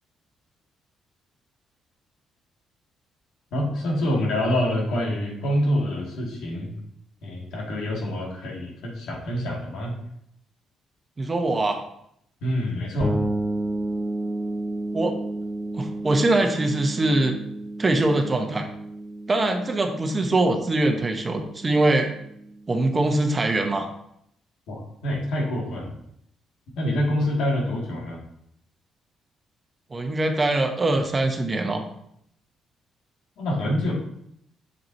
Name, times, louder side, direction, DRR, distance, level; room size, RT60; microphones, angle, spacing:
voice 1, 3.5-6.7 7.2-10.0 12.4-13.1 24.7-26.0 26.8-28.2 33.4-33.9, left 1 dB, 80° left, -2 dB, 2.3 m, -26 dB
voice 2, 11.2-11.8 14.9-15.1 15.8-17.3 17.8-18.7 19.3-22.1 22.7-23.9 29.9-31.8, right 2 dB, 30° right, 4 dB, 1.1 m, -22 dB
sound 1, 13.0-22.6, right 1 dB, 10° left, 3.1 m, -32 dB
7.7 x 6.7 x 2.8 m, 0.73 s
cardioid pair, 90°, 0 cm